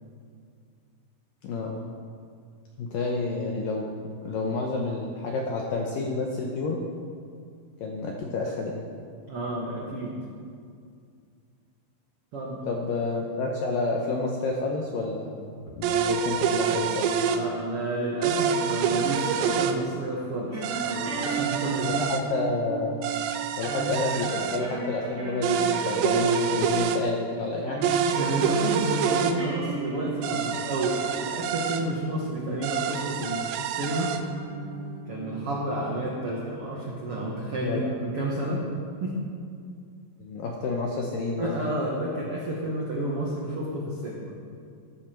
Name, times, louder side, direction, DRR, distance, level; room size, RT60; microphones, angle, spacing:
voice 1, 1.4-1.8 2.8-3.9 4.2-6.8 7.8-8.8 12.7-17.1 21.8-23.0 23.6-27.9 37.6-37.9 40.2-41.5, left 3 dB, 75° left, 0 dB, 2.0 m, -29 dB
voice 2, 9.3-10.2 12.3-12.7 17.3-22.1 28.1-34.1 35.1-38.6 39.0-39.2 41.4-44.3, right 1 dB, 70° right, -4 dB, 1.3 m, -30 dB
sound 1, 15.8-17.4 18.2-19.8 20.6-22.2 23.0-24.6 25.4-27.0 27.8-29.4 30.2-31.8 32.6-34.2, right 7 dB, 85° right, 3.0 m, -27 dB
sound 2, 20.5-31.7 32.1-32.3 33.9-35.7, right 4 dB, 30° right, 1.5 m, -37 dB
13.0 x 13.0 x 4.5 m, 2.3 s
omnidirectional pair, 5.0 m